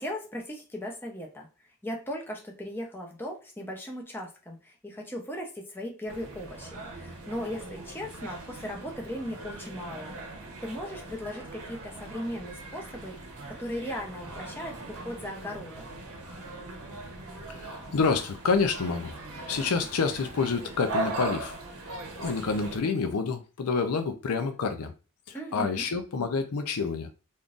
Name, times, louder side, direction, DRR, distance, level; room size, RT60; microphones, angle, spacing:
voice 1, 0.0-1.5 1.8-13.2 13.5-15.9 25.3-25.9, equal, 10° left, 0.7 m, -38 dB
sound 1, 6.1-22.8, right 2 dB, 85° right, 0.8 m, -40 dB
voice 2, 17.5-19.1 19.5-21.5 22.2-24.9 25.3-27.1, left 4 dB, 85° left, 0.5 m, -28 dB
3.7 x 2.6 x 2.4 m
head